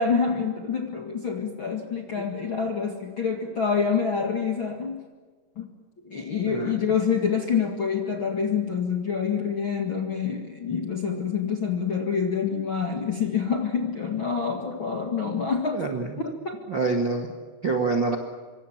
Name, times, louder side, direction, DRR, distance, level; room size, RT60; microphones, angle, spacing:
voice 1, 0.0-5.1 5.5-5.7 6.0-15.8 16.2-16.6, left 6 dB, 40° left, 3 dB, 1.8 m, -27 dB
voice 2, 6.4-6.9 15.3-15.4 15.7-16.2 16.7-17.3 17.6-18.2, right 3 dB, 45° right, 3 dB, 1.5 m, -26 dB
26.5 x 24.5 x 7.4 m, 1.5 s
omnidirectional pair, 5.1 m